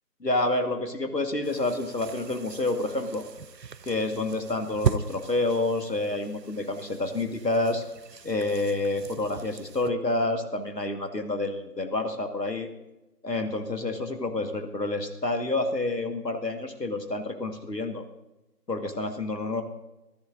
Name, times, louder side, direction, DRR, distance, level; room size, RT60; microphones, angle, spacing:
voice 1, 0.2-3.2 3.9-7.8 8.2-12.7 13.2-18.0 18.7-19.6, left 2 dB, 75° left, 6 dB, 1.8 m, -28 dB
sound 1, 1.4-9.9, right 6 dB, 80° right, 0.7 m, -37 dB
22.0 x 15.0 x 2.6 m, 0.98 s
figure-of-eight pair, 170°, 49 cm